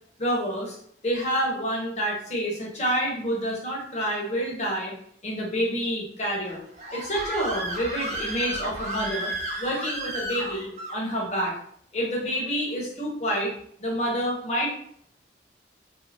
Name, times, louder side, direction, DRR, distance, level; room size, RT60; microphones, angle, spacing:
voice 1, 0.2-0.8 1.0-4.9 5.2-6.6 6.9-9.3 9.6-11.5 11.9-13.5 13.8-14.7, equal, 40° left, -2 dB, 0.9 m, -28 dB
Screaming, 6.4-11.0, right 1 dB, 40° right, 0.6 m, -33 dB
2.5 x 2.3 x 3.3 m, 0.65 s
head